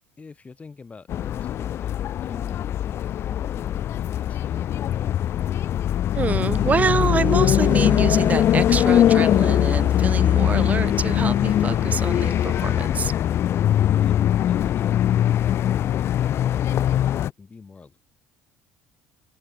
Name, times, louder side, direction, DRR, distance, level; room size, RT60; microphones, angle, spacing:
voice 1, 0.2-4.9 13.5-14.2 14.5-18.0, left 4 dB, 25° left, 7.2 m, -45 dB
sound 1, 1.1-17.3, left 11 dB, 50° left, 0.6 m, -21 dB
voice 2, 6.1-13.1, right 6 dB, 30° right, 0.5 m, -26 dB
sound 2, 6.5-15.3, right 28 dB, 90° right, 2.9 m, -50 dB
open air
supercardioid pair, 90°, 5 cm